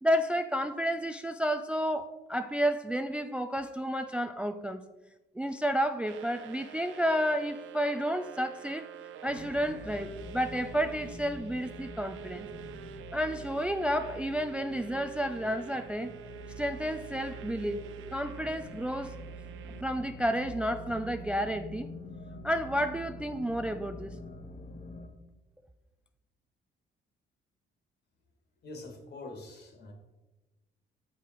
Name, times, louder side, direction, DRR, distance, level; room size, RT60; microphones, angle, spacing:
voice 1, 0.0-4.8 5.4-8.9 9.2-12.5 13.1-16.1 16.6-17.8 18.1-19.2 19.8-21.9 22.4-24.2, equal, 5° right, 9 dB, 0.3 m, -31 dB
sound 1, 6.1-19.8, right 9 dB, 80° right, 0.5 m, -47 dB
sound 2, 9.3-25.1, equal, 40° left, 1.0 m, -46 dB
voice 2, 28.6-29.9, left 2 dB, 55° left, 3 dB, 1.8 m, -44 dB
6.8 x 4.8 x 4.5 m, 1.1 s
cardioid pair, 90°, 20 cm